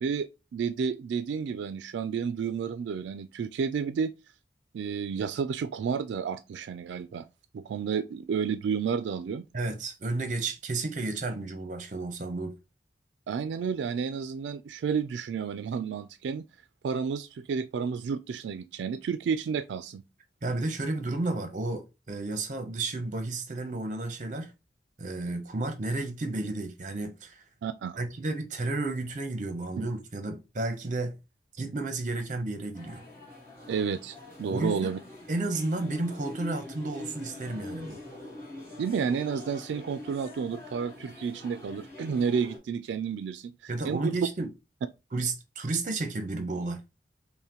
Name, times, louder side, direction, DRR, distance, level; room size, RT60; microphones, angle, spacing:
voice 1, 0.0-4.1 4.7-7.3 7.5-9.5 13.3-16.4 16.8-20.0 27.6-28.0 33.7-35.0 38.8-43.5 43.8-44.1, right 6 dB, 85° right, 0.3 m, -31 dB
voice 2, 9.5-12.6 20.4-24.5 25.0-27.4 28.0-31.2 31.6-33.0 34.5-34.8 35.3-38.0 43.7-44.5 45.1-46.8, right 2 dB, 45° right, 0.7 m, -32 dB
sound 1, 32.7-42.6, left 1 dB, 15° left, 1.4 m, -44 dB
5.5 x 2.1 x 2.9 m
head